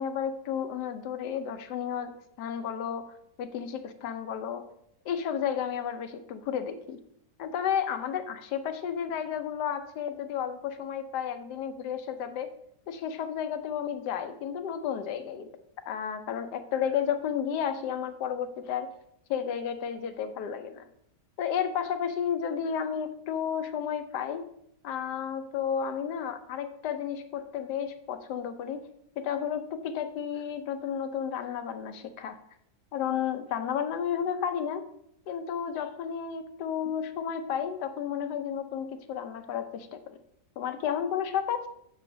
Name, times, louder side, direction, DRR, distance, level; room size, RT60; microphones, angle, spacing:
voice 1, 0.0-3.1 3.4-4.7 5.0-7.0 7.4-12.5 12.9-15.5 15.9-18.9 19.3-20.8 21.4-24.5 24.8-28.8 29.2-32.4 32.9-34.8 35.3-40.2 40.6-41.7, left 8 dB, 80° left, 10 dB, 1.2 m, -32 dB
7.6 x 7.3 x 2.6 m, 0.74 s
omnidirectional pair, 1.8 m